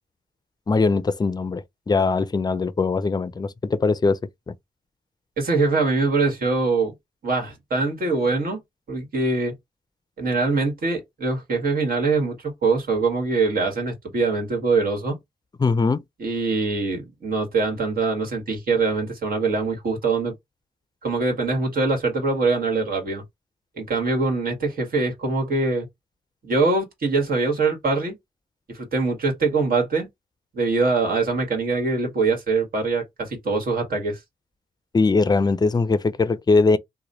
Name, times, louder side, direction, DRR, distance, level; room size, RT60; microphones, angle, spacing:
voice 1, 0.7-4.2 4.5-4.6 15.6-16.0 34.9-36.8, left 4 dB, 25° left, 0.4 m, -21 dB
voice 2, 5.4-6.9 7.2-8.6 8.9-9.5 10.2-12.4 12.6-15.2 16.2-20.3 21.0-23.2 23.8-25.9 26.4-28.1 28.7-30.1 30.5-34.2, right 3 dB, 70° right, 1.5 m, -23 dB
3.0 x 2.2 x 3.9 m
cardioid pair, 80°, 16 cm